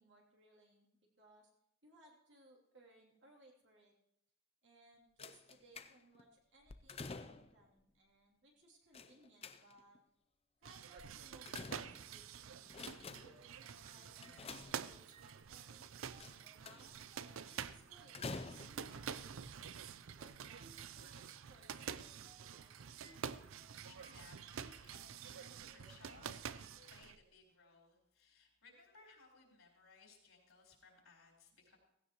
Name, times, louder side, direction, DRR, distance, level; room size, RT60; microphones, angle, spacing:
voice 1, 0.0-1.5 1.8-3.9 4.6-10.0 10.6-12.7 13.1-15.9 16.3-17.0 17.5-22.8, right 2 dB, 60° right, -1 dB, 3.1 m, -65 dB
sound 1, 5.2-6.2 6.7-7.6 8.9-10.0 11.0-12.3 12.7-13.5 14.2-15.2 16.2-17.0 18.1-19.0 19.8-19.9 20.3-20.4, left 4 dB, 30° left, 0.5 m, -49 dB
sound 2, 10.6-27.2, right 7 dB, 75° right, 0.5 m, -48 dB
sound 3, 13.0-27.3, right 2 dB, 30° right, 0.9 m, -67 dB
voice 2, 23.3-31.8, left 4 dB, 80° left, -1 dB, 4.1 m, -64 dB
16.5 x 16.5 x 3.1 m, 0.80 s
head